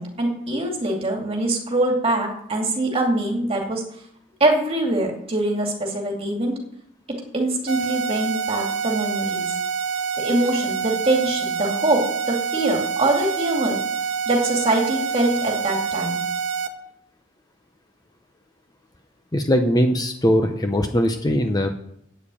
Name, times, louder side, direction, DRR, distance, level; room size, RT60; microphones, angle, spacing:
voice 1, 0.0-3.8 4.4-6.5 7.3-9.4 10.2-13.8 14.3-16.2, right 2 dB, 30° right, 1 dB, 2.5 m, -23 dB
sound 1, 7.7-16.7, right 6 dB, 70° right, 1.0 m, -26 dB
voice 2, 19.3-21.7, equal, 20° left, 5 dB, 0.7 m, -20 dB
8.7 x 7.3 x 8.4 m, 0.71 s
head